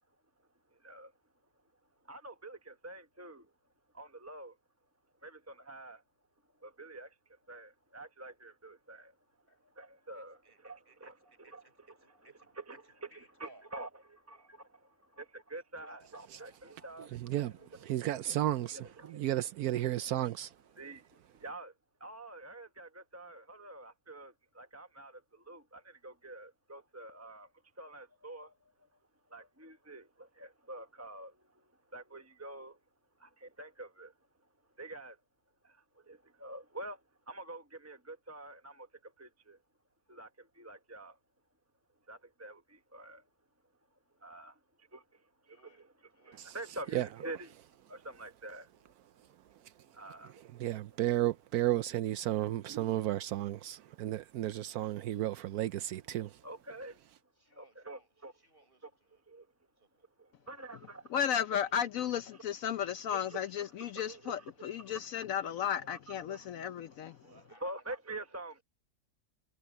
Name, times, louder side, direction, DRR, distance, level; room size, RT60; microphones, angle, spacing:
voice 1, 0.4-1.2 2.0-3.5 3.9-4.6 5.2-6.0 6.5-9.2 9.5-17.1 17.5-18.1 18.7-19.5 19.9-20.1 20.8-21.7 22.0-32.8 33.2-34.5 34.7-35.2 35.6-39.6 40.1-41.2 42.1-43.3 43.9-50.7 53.8-54.1 56.4-57.0 57.5-58.3 58.8-59.5 60.1-61.1 63.1-63.4 63.8-64.3 64.6-65.0 65.6-66.0 66.3-66.5 67.2-68.6, right 2 dB, 10° right, 0.9 m, -48 dB
voice 2, 10.1-12.6 13.1-13.7 14.3-14.6 14.9-15.2 15.8-17.2 17.5-17.7 45.5-45.8 46.1-46.9 57.4-58.1 58.4-59.2 59.8-60.1 67.2-67.7, right 1 dB, 35° right, 6.7 m, -63 dB
voice 3, 17.1-17.5 17.8-20.5 46.4-46.5 46.9-47.1 50.6-56.4, right 14 dB, 80° right, 1.1 m, -33 dB
voice 4, 61.1-67.4, left 9 dB, 70° left, 1.0 m, -34 dB
omnidirectional pair, 1.6 m